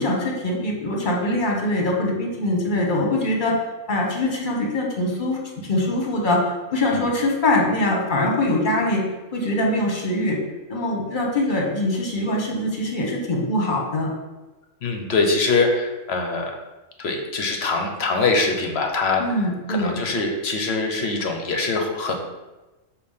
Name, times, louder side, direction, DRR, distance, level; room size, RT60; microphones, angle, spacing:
voice 1, 0.0-3.6 3.9-9.0 9.3-10.4 10.7-14.1 19.2-20.0, left 1 dB, 40° left, 0 dB, 1.3 m, -23 dB
voice 2, 14.8-16.5 17.0-19.2 19.7-22.1, left 3 dB, 55° left, 3 dB, 1.0 m, -23 dB
6.7 x 2.6 x 5.5 m, 1.1 s
omnidirectional pair, 1.4 m